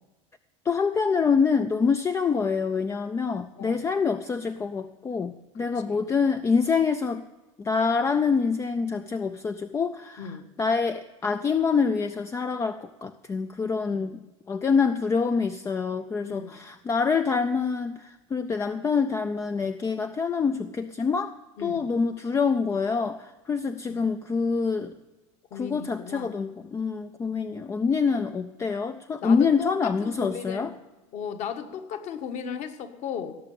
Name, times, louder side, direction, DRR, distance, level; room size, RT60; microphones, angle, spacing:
voice 1, 0.6-7.2 7.6-10.3 10.6-14.2 14.5-21.3 21.6-24.9 25.5-30.7, left 5 dB, 15° left, 10 dB, 0.4 m, -26 dB
voice 2, 16.3-16.6 21.6-21.9 23.9-24.1 25.5-26.3 29.2-30.7 31.1-33.4, left 7 dB, 45° left, 7 dB, 1.5 m, -36 dB
17.5 x 6.4 x 8.5 m, 1.1 s
supercardioid pair, 125°, 16 cm